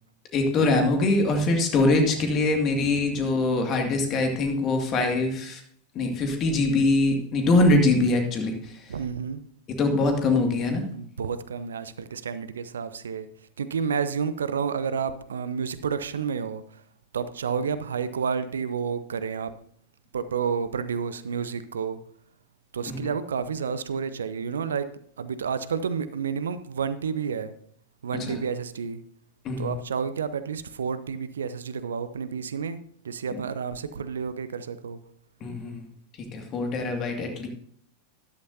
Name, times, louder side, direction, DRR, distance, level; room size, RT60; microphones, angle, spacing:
voice 1, 0.3-5.6 5.9-8.8 9.8-10.8 22.9-23.0 28.3-28.4 29.4-29.7 35.4-35.9 36.3-37.5, left 2 dB, 30° left, 4 dB, 2.2 m, -23 dB
voice 2, 8.9-9.4 10.9-13.3 13.6-16.8 17.1-19.5 20.1-22.0 22.7-24.9 25.2-27.5 28.0-29.0 29.6-35.0, right 6 dB, 65° right, 13 dB, 0.6 m, -30 dB
13.0 x 11.5 x 2.8 m, 0.62 s
figure-of-eight pair, 90°, 0 cm